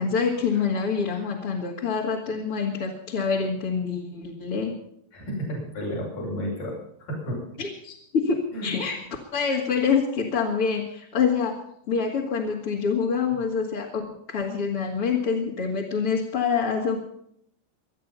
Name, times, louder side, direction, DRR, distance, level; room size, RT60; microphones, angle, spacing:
voice 1, 0.0-4.7 7.6-8.9 9.3-11.6 11.9-17.0, left 5 dB, 40° left, -3 dB, 2.5 m, -26 dB
voice 2, 5.1-6.7 7.1-7.4 8.5-8.7, equal, 60° left, -5 dB, 7.6 m, -32 dB
25.5 x 9.3 x 5.5 m, 0.70 s
omnidirectional pair, 4.4 m